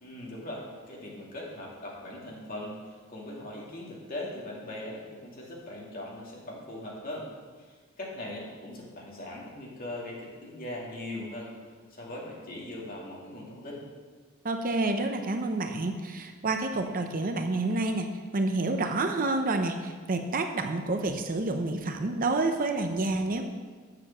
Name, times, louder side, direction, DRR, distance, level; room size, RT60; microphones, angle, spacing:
voice 1, 0.0-7.3 7.6-11.5 11.9-13.9, left 1 dB, 45° left, -3 dB, 2.4 m, -40 dB
voice 2, 14.4-23.4, right 2 dB, 40° right, 5 dB, 0.7 m, -29 dB
7.7 x 6.8 x 7.2 m, 1.5 s
head